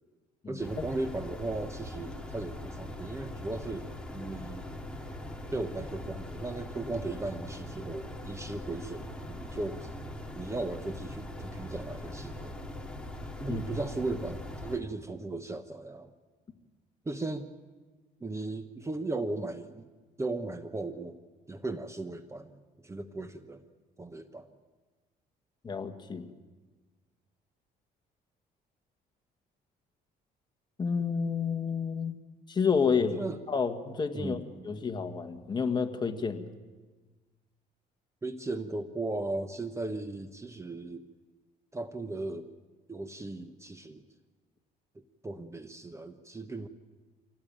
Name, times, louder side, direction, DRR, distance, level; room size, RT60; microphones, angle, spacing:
voice 1, 0.5-4.7 5.5-9.9 10.3-12.6 13.4-16.1 17.0-17.5 18.2-19.9 20.2-21.2 21.5-23.6 24.0-24.5 33.1-33.4 34.1-34.8 38.2-41.1 41.7-42.5 42.9-44.1 45.2-46.7, right 2 dB, 15° right, 9 dB, 1.1 m, -37 dB
sound 1, 0.6-14.8, left 1 dB, 5° left, 2.5 m, -41 dB
voice 2, 25.6-26.3 30.8-32.2 32.5-33.2 33.5-34.4 34.6-36.4, left 5 dB, 25° left, 6 dB, 1.8 m, -29 dB
25.0 x 18.0 x 8.8 m, 1.3 s
cardioid pair, 110°, 17 cm